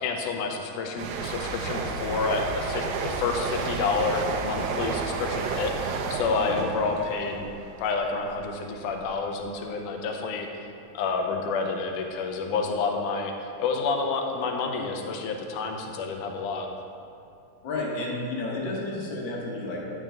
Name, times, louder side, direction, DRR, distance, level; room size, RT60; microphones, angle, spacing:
voice 1, 0.0-5.8 6.1-7.4 7.8-10.5 10.9-13.3 13.6-16.7, left 4 dB, 85° left, 3 dB, 2.2 m, -29 dB
sound 1, 1.0-8.4 8.7-9.0, right 4 dB, 75° right, 1.8 m, -31 dB
sound 2, 3.2-7.9, equal, 55° right, 1.4 m, -45 dB
voice 2, 6.4-6.7 17.6-19.9, left 2 dB, 60° left, -3 dB, 1.2 m, -32 dB
9.8 x 5.9 x 3.4 m, 2.5 s
omnidirectional pair, 3.6 m